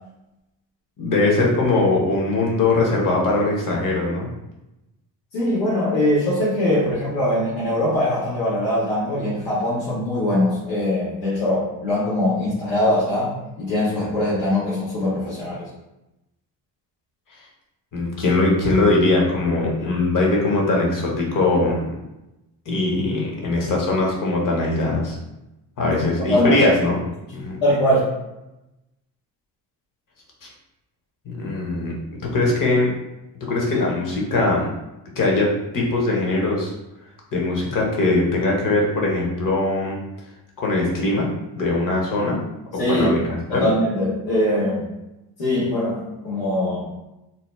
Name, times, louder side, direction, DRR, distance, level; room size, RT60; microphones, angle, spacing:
voice 1, 1.0-4.3 17.9-21.9 22.7-25.2 25.8-27.0 27.3-27.6 30.4-30.5 31.2-31.9 32.3-32.9 33.5-34.7 35.2-36.7 37.3-40.0 40.6-41.3 41.6-42.4 42.9-43.2 43.5-43.7, left 2 dB, 45° left, -2 dB, 1.1 m, -21 dB
voice 2, 5.3-15.7 26.3-26.6 27.6-28.1 42.8-43.1 43.5-44.9 45.4-46.9, left 1 dB, 75° left, -10 dB, 1.1 m, -22 dB
2.9 x 2.0 x 3.2 m, 0.93 s
supercardioid pair, 70°, 44 cm